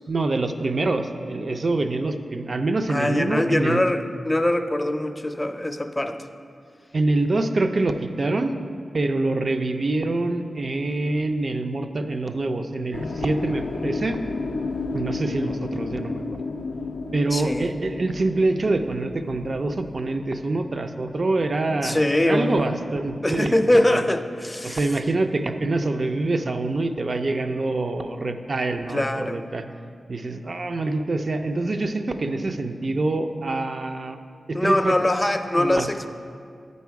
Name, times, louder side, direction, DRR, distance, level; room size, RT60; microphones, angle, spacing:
voice 1, 0.1-3.8 6.9-8.5 8.9-14.2 14.9-16.2 17.1-24.0 24.6-29.7 30.1-34.2 34.5-35.0 35.6-35.9, right 2 dB, 55° right, 7 dB, 0.4 m, -25 dB
voice 2, 2.9-6.2 17.3-17.7 21.8-22.6 23.2-24.9 28.9-29.4 34.5-36.1, left 1 dB, 20° left, 8 dB, 0.4 m, -22 dB
sound 1, 12.9-23.0 23.3-25.0, left 3 dB, 90° left, 0.4 m, -33 dB
9.1 x 4.1 x 4.7 m, 2.3 s
cardioid pair, 50°, 0 cm